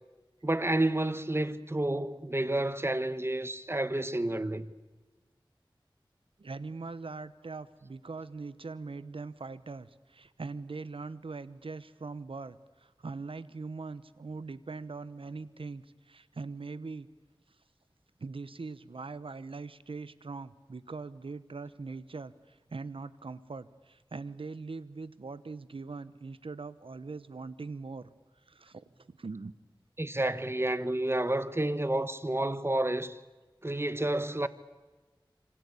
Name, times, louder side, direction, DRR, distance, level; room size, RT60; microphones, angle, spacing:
voice 1, 0.4-4.7 30.0-33.2 33.6-34.5, right 1 dB, 30° right, 1.4 m, -30 dB
voice 2, 6.4-17.1 18.2-28.1 28.5-29.5, right 4 dB, 90° right, 1.1 m, -41 dB
27.0 x 25.0 x 8.5 m
wide cardioid pair, 50°, 9 cm